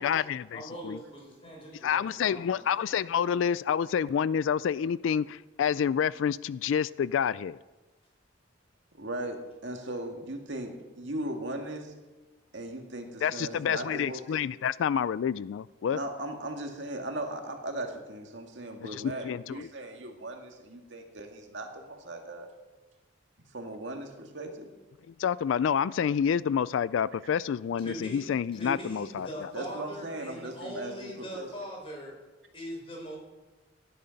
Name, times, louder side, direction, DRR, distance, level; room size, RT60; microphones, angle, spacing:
voice 1, 0.0-1.0 1.8-7.6 13.2-16.0 18.8-19.7 25.2-29.5, left 8 dB, 85° left, 19 dB, 0.3 m, -28 dB
voice 2, 0.5-2.7 13.8-13.9 27.8-32.1 32.5-33.2, equal, 30° left, -1 dB, 5.1 m, -41 dB
voice 3, 8.9-11.9 12.5-14.2 15.9-22.5 23.5-24.7 27.2-27.3 29.5-31.5, right 1 dB, 70° right, 3 dB, 2.0 m, -38 dB
16.5 x 11.0 x 5.3 m, 1.2 s
head